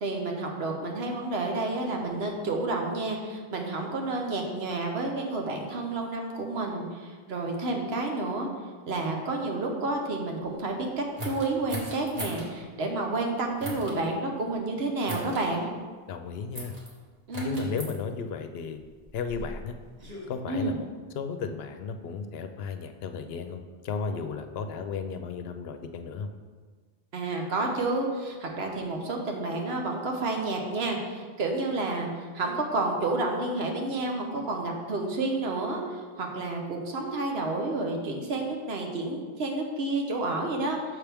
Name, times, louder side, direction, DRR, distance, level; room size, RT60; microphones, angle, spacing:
voice 1, 0.0-8.5 8.9-15.7 17.3-17.7 20.5-20.7 27.1-41.0, right 2 dB, 85° right, 1 dB, 1.2 m, -30 dB
sound 1, 11.2-12.5 13.6-14.0 15.0-15.4 16.5-16.9 17.3-17.9 18.8-20.3, equal, 40° right, 1.2 m, -38 dB
voice 2, 16.1-16.7 17.4-18.8 19.1-19.7 20.3-20.9 21.1-26.3, left 5 dB, 80° left, 7 dB, 0.8 m, -34 dB
6.2 x 5.9 x 3.4 m, 1.5 s
omnidirectional pair, 1.0 m